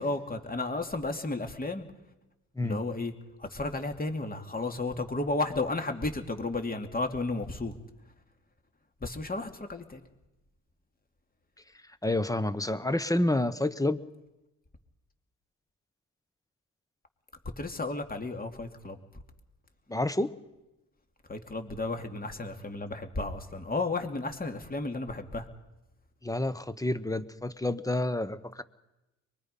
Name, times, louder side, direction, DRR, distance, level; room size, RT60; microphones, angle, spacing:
voice 1, 0.0-1.9 2.6-3.1 3.4-7.8 9.0-10.0 17.6-19.0 21.3-25.5, left 2 dB, 25° left, 5 dB, 2.6 m, -33 dB
voice 2, 12.0-14.0 19.9-20.3 26.2-28.6, left 1 dB, 10° left, 13 dB, 1.1 m, -29 dB
23.5 x 21.5 x 5.5 m, 0.99 s
cardioid pair, 75°, 34 cm